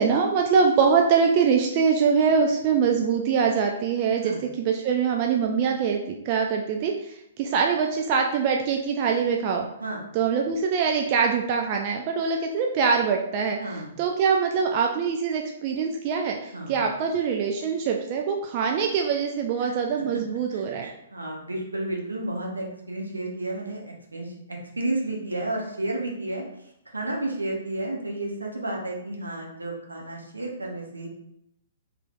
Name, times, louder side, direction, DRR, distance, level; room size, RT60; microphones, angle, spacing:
voice 1, 0.0-9.7 10.1-20.9, right 6 dB, 35° right, 2 dB, 0.3 m, -23 dB
voice 2, 20.5-26.4 26.9-31.1, right 2 dB, 80° right, -1 dB, 0.8 m, -32 dB
3.6 x 3.2 x 2.4 m, 0.78 s
figure-of-eight pair, 120°, 0 cm